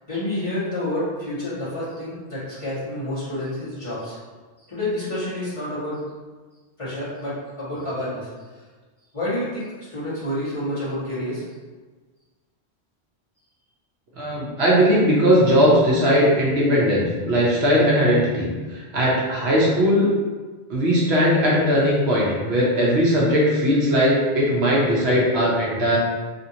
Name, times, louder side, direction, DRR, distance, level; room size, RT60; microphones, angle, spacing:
voice 1, 0.1-4.2 4.7-6.0 6.8-8.6 9.1-11.4, left 1 dB, 30° left, -12 dB, 1.5 m, -29 dB
voice 2, 14.2-20.0 20.7-26.0, equal, 70° right, -5 dB, 1.1 m, -19 dB
3.4 x 2.7 x 2.7 m, 1.4 s
omnidirectional pair, 1.1 m